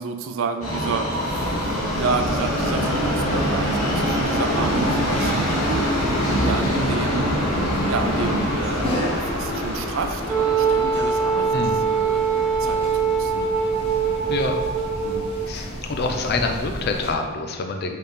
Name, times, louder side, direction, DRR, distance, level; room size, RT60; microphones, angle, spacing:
voice 1, 0.0-1.6 1.9-7.4 7.9-11.5 11.9-12.2 12.6-13.5 15.0-15.3, right 4 dB, 70° right, 7 dB, 0.4 m, -30 dB
Subway metro underground, 0.6-14.7 15.0-15.1 16.0-16.1 16.4-16.5 17.1-17.2, equal, 90° left, 1.1 m, -25 dB
sound 1, 1.2-17.1, equal, 25° left, 0.8 m, -34 dB
Wind instrument woodwind instrument, 10.3-15.4, right 6 dB, 5° right, 1.0 m, -22 dB
voice 2, 11.5-11.9 14.3-14.6 15.5-18.0, left 3 dB, 50° left, 4 dB, 0.4 m, -26 dB
4.5 x 3.5 x 3.3 m, 1.3 s
head